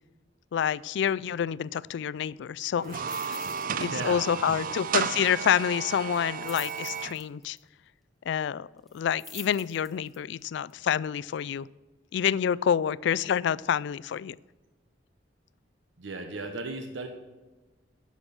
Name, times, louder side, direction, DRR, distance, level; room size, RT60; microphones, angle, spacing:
voice 1, 0.5-3.4 3.8-7.6 8.3-8.7 8.9-11.7 12.1-14.4, left 8 dB, 70° left, 21 dB, 0.3 m, -28 dB
sound 1, 2.8-3.7 4.0-4.2 4.5-4.6 6.1-7.6 8.9-10.2 10.7-10.8, left 2 dB, ahead, 1.0 m, -46 dB
sound 2, 2.8-7.1, right 7 dB, 50° right, 0.5 m, -33 dB
voice 2, 3.7-4.3 4.5-4.7 16.0-17.1, right 2 dB, 85° right, 5 dB, 1.0 m, -36 dB
10.5 x 6.3 x 7.2 m, 1.2 s
head